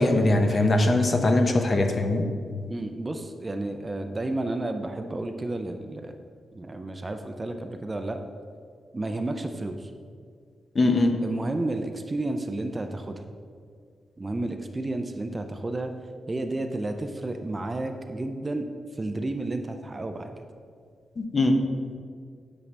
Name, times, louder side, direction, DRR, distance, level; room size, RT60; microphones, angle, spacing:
voice 1, 0.0-2.2 10.7-11.2 21.2-21.6, left 2 dB, 35° left, 5 dB, 0.6 m, -21 dB
voice 2, 2.7-6.2 6.5-8.2 8.9-9.9 11.2-13.2 14.2-15.9 16.3-18.7 19.0-20.3, right 2 dB, 20° right, 6 dB, 0.4 m, -31 dB
8.5 x 5.3 x 3.3 m, 2.1 s
cardioid pair, 115°, 0 cm